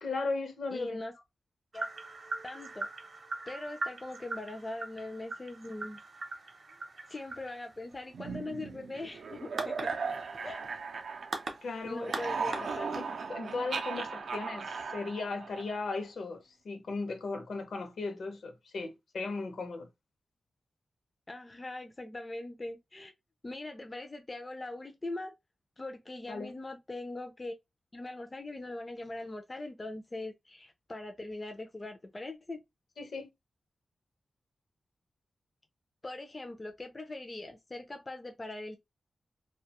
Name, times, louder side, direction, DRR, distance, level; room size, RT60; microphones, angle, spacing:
voice 1, 0.0-1.0 11.6-12.1 12.5-12.6 12.9-13.0 13.3-19.9 26.3-26.5 33.0-33.3, left 3 dB, 70° left, 0.6 m, -37 dB
voice 2, 0.7-1.1 1.7-1.9 2.4-2.9 3.5-6.0 6.4-6.5 7.1-10.0 10.4-10.6 11.8-12.9 13.5-13.9 21.3-23.1 23.4-25.3 25.8-27.6 27.9-32.6 36.0-38.8, left 2 dB, 20° left, 0.3 m, -41 dB
sound 1, 1.7-13.2, right 3 dB, 40° right, 0.6 m, -42 dB
sound 2, 8.1-11.6 11.9-16.0, right 5 dB, 85° right, 0.4 m, -37 dB
2.3 x 2.1 x 2.8 m
wide cardioid pair, 170°, 0 cm